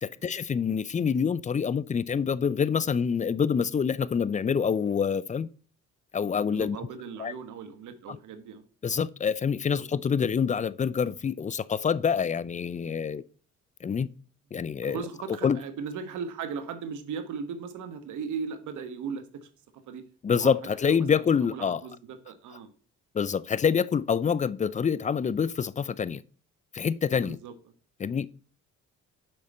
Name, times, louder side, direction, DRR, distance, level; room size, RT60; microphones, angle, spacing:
voice 1, 0.0-5.5 6.1-6.8 7.2-7.3 8.1-8.2 8.8-13.2 13.8-14.1 14.5-15.0 15.4-15.6 20.2-21.8 23.1-26.2 26.7-27.4 28.0-28.3, left 6 dB, 25° left, 0.4 m, -26 dB
voice 2, 6.5-8.6 9.8-9.9 14.8-19.5 19.9-20.0 20.3-20.5 20.8-21.2 21.5-22.7 27.2-27.5, right 6 dB, 80° right, 1.3 m, -37 dB
7.7 x 5.0 x 4.2 m
cardioid pair, 90°, 30 cm